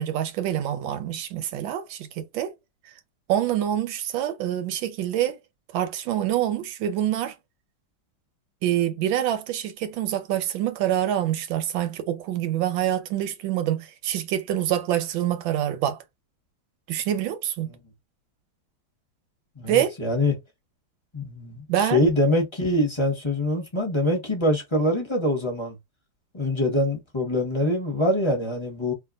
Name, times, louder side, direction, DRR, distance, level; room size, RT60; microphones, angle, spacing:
voice 1, 0.0-2.5 2.8-2.9 3.3-5.4 5.7-7.4 8.6-16.0 16.9-17.7 19.7-19.9 21.7-22.0, right 11 dB, 85° right, 1.4 m, -26 dB
voice 2, 19.6-20.3 21.1-25.8 26.3-28.9, left 1 dB, 20° left, 0.8 m, -24 dB
3.3 x 2.4 x 2.4 m
omnidirectional pair, 2.1 m